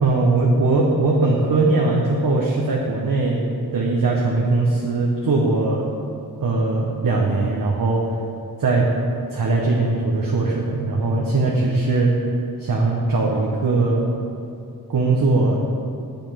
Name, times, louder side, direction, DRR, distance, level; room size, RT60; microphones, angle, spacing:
voice 1, 0.0-3.4 3.7-5.9 6.4-8.0 8.6-8.8 9.3-12.1 12.6-14.1 14.9-15.6, right 3 dB, 60° right, -3 dB, 0.9 m, -20 dB
7.3 x 5.4 x 5.6 m, 2.7 s
wide cardioid pair, 70°, 37 cm